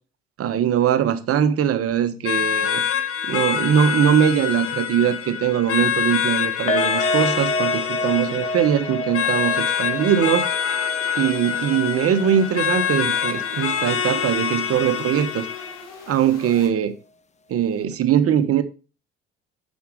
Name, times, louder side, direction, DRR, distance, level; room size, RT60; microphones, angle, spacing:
voice 1, 0.4-2.8 3.2-10.5 11.2-15.5 16.1-16.9 17.5-18.6, right 9 dB, 50° right, 1.3 m, -21 dB
sound 1, 1.9-16.7, left 5 dB, 65° left, 2.8 m, -43 dB
sound 2, 2.2-15.8, left 8 dB, 50° left, 1.4 m, -25 dB
sound 3, 6.7-13.9 14.1-14.3 14.7-14.8, left 1 dB, 25° left, 0.8 m, -30 dB
7.1 x 6.5 x 6.3 m
hypercardioid pair, 60°, 30 cm